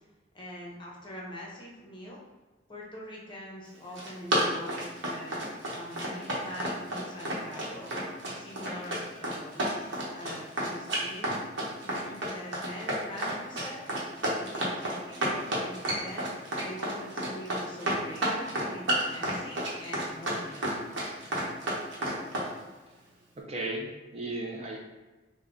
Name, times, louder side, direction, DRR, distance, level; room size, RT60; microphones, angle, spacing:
voice 1, 0.3-2.2 2.7-5.4 5.7-7.9 8.3-9.6 10.1-11.4 11.8-13.8 14.2-20.8, equal, 25° left, -3 dB, 0.7 m, -43 dB
Run, 3.7-22.5, right 1 dB, 80° right, 0.9 m, -31 dB
voice 2, 23.4-24.8, right 2 dB, 35° right, -1 dB, 0.4 m, -35 dB
3.5 x 2.1 x 3.7 m, 1.2 s
head